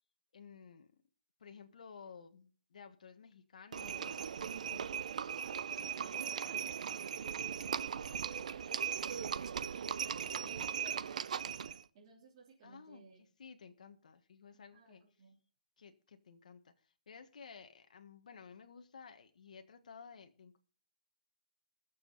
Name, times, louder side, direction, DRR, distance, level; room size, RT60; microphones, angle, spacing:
voice 1, 0.3-0.9 1.4-4.9 10.4-10.7 12.6-15.0 15.8-20.6, left 6 dB, 65° left, 6 dB, 1.5 m, -55 dB
Livestock farm animals working animals, 3.7-11.8, right 7 dB, 60° right, 0.7 m, -38 dB
voice 2, 5.5-9.8 10.4-13.2 14.5-15.4, right 5 dB, 30° right, -5 dB, 3.4 m, -59 dB
20.5 x 7.1 x 4.1 m, 0.41 s
hypercardioid pair, 160°, 4 cm